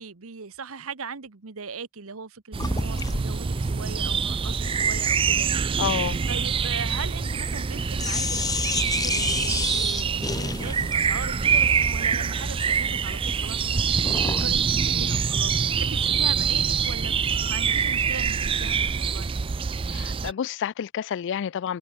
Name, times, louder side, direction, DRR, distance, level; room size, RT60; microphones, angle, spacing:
voice 1, 0.0-5.7 6.3-17.2 17.5-19.3, right 5 dB, 65° right, 1.1 m, -39 dB
sound 1, 2.5-20.3, right 6 dB, 25° right, 0.3 m, -25 dB
sound 2, 2.6-7.7 8.0-14.5, left 3 dB, 15° left, 1.5 m, -32 dB
voice 2, 5.8-6.2 19.9-21.8, left 8 dB, 55° left, 0.3 m, -29 dB
head